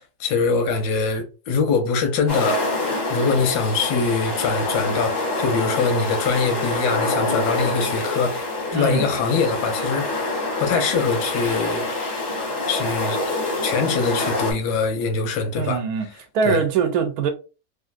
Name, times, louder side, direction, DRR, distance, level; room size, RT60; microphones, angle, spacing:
voice 1, 0.2-2.7 3.1-8.4 8.7-10.2 10.6-11.8 12.7-13.2 13.6-15.8 16.4-16.6, left 4 dB, 90° left, 1.2 m, -23 dB
sound 1, 2.3-14.5, left 2 dB, 40° left, 0.7 m, -26 dB
voice 2, 8.7-9.1 15.6-16.1 16.3-17.3, right 6 dB, 75° right, 1.0 m, -22 dB
3.0 x 2.5 x 2.4 m
omnidirectional pair, 1.7 m